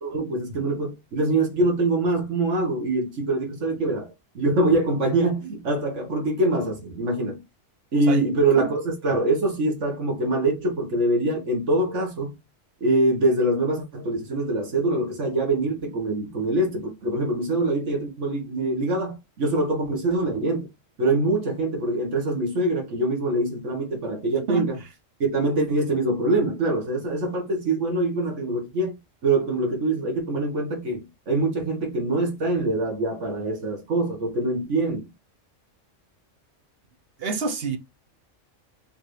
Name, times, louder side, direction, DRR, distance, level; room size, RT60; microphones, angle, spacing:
voice 1, 0.0-7.4 7.9-12.3 12.8-20.7 21.0-24.8 25.2-29.0 29.2-35.1, right 2 dB, 70° right, 1.9 m, -24 dB
voice 2, 37.2-37.8, right 4 dB, 55° right, 1.0 m, -27 dB
4.4 x 3.6 x 3.2 m
omnidirectional pair, 1.3 m